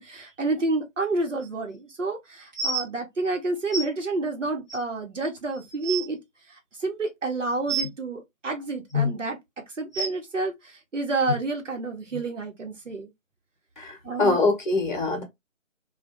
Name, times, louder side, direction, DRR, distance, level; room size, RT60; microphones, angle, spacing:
voice 1, 0.0-6.2 6.8-9.4 9.8-13.1 14.0-14.4, right 2 dB, 65° right, 1.0 m, -29 dB
sound 1, 2.5-2.8 3.7-3.8 4.7-4.8 5.4-5.5 5.7-6.0 7.7-7.9 8.9-9.1 9.9-10.1 11.3-11.4 12.1-12.2 12.9-13.0, equal, 35° right, 0.8 m, -27 dB
voice 2, 13.8-15.2, left 3 dB, 35° left, 0.9 m, -24 dB
2.4 x 2.2 x 2.8 m
figure-of-eight pair, 160°, 40 cm